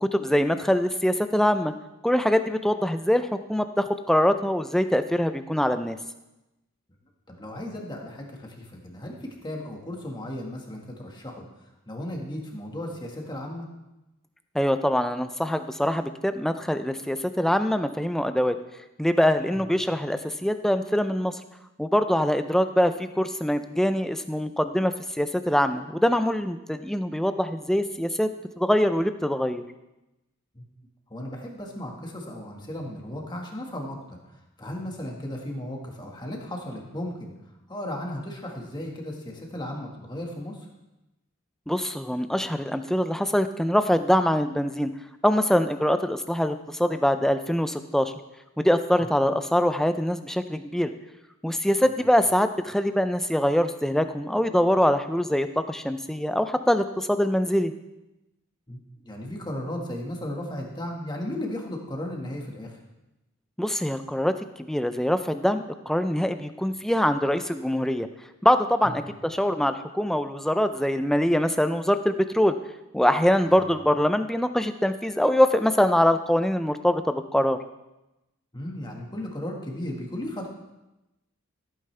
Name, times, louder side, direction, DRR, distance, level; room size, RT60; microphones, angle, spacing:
voice 1, 0.0-1.7 2.0-6.0 14.5-18.6 19.0-21.3 21.8-28.3 28.6-29.6 41.7-44.9 45.2-48.1 48.6-50.9 51.4-57.7 63.6-68.1 68.4-72.5 72.9-77.6, equal, ahead, 9 dB, 0.4 m, -23 dB
voice 2, 7.3-11.4 11.9-13.7 19.5-19.7 30.5-30.6 31.1-34.2 34.6-37.3 37.7-40.6 51.9-52.0 58.7-58.8 59.0-62.8 68.8-69.0 73.5-73.6 78.5-80.5, left 1 dB, 20° left, 0 dB, 1.6 m, -35 dB
15.0 x 9.1 x 3.3 m, 0.97 s
head